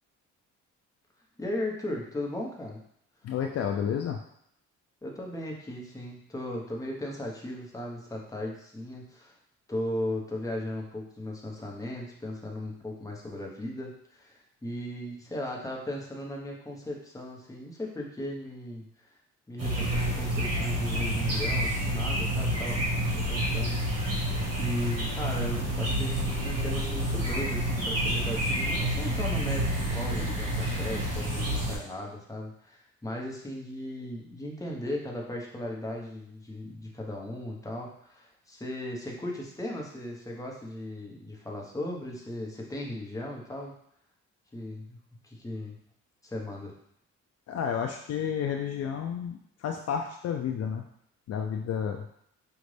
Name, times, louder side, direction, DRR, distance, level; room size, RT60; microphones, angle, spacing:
voice 1, 1.4-2.8 5.0-9.4 9.7-18.8 19.5-22.8 23.1-24.2 24.5-43.7 44.5-45.8 46.2-46.7, left 1 dB, 10° left, -2 dB, 1.0 m, -37 dB
voice 2, 3.2-4.2 47.5-50.8 51.3-52.0, left 7 dB, 55° left, 3 dB, 0.5 m, -31 dB
sound 1, 19.6-31.8, equal, 55° right, 1.5 m, -29 dB
5.2 x 2.5 x 3.3 m, 0.71 s
cardioid pair, 90°, 30 cm